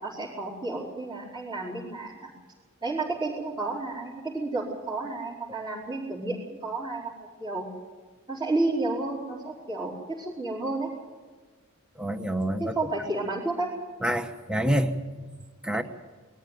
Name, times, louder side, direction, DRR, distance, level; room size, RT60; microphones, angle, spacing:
voice 1, 0.0-2.3 2.8-7.1 7.4-7.7 8.3-10.9 12.6-13.7, right 2 dB, 25° right, -8 dB, 4.6 m, -31 dB
voice 2, 12.0-12.7 14.0-14.9 15.6-15.8, right 1 dB, 5° right, 8 dB, 1.2 m, -26 dB
22.5 x 14.0 x 9.2 m, 1.4 s
head